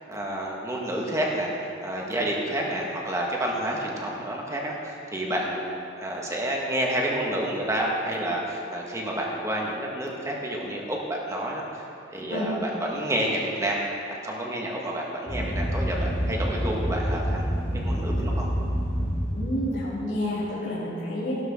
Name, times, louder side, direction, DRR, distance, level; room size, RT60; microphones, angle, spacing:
voice 1, 0.1-5.7 6.0-13.8 14.1-18.5, right 1 dB, 15° right, -2 dB, 1.8 m, -29 dB
sound 1, 15.3-19.9, equal, 10° left, 2.1 m, -27 dB
voice 2, 19.3-21.4, left 1 dB, 85° left, -11 dB, 3.7 m, -29 dB
16.0 x 12.0 x 3.9 m, 2.6 s
head